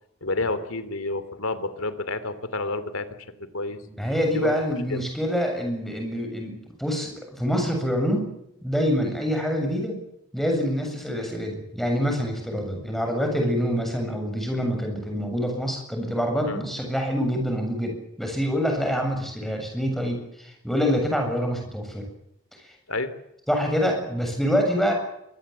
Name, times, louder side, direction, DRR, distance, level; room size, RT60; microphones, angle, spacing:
voice 1, 0.2-3.1 3.4-3.8 4.3-4.5 4.9-5.0 16.5-16.6 22.9-23.1, left 2 dB, 80° left, 13 dB, 2.9 m, -29 dB
voice 2, 3.9-6.5 6.8-8.3 8.6-10.0 10.3-22.0 23.5-24.9, equal, ahead, 3 dB, 7.4 m, -26 dB
24.0 x 20.5 x 8.5 m, 0.80 s
head